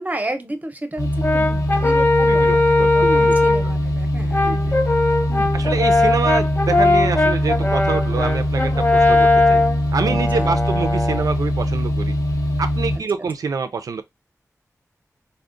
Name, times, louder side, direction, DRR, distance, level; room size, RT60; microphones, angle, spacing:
voice 1, 0.0-2.1 2.3-2.6 2.9-4.4 5.3-5.5 10.1-10.5 12.9-13.0, right 1 dB, 25° right, 0.6 m, -31 dB
sound 1, 1.0-13.0, equal, 85° left, 0.7 m, -22 dB
Brass instrument, 1.2-3.7 4.3-11.3, left 2 dB, 30° left, 0.4 m, -19 dB
voice 2, 2.2-3.4 4.4-4.8 5.5-9.6 9.9-12.2 12.6-14.0, right 5 dB, 90° right, 0.4 m, -26 dB
3.6 x 2.0 x 2.4 m
wide cardioid pair, 55°, 6 cm